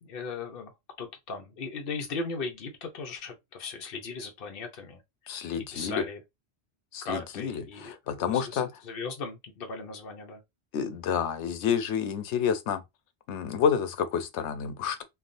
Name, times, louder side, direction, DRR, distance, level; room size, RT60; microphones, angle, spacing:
voice 1, 0.0-0.7 1.0-5.0 5.3-5.4 5.7-6.2 7.0-10.4, left 4 dB, 60° left, 0.9 m, -37 dB
voice 2, 5.3-6.0 6.9-8.7 10.7-12.8 13.3-15.0, left 7 dB, 90° left, 0.9 m, -29 dB
3.4 x 2.4 x 2.5 m
omnidirectional pair, 1.2 m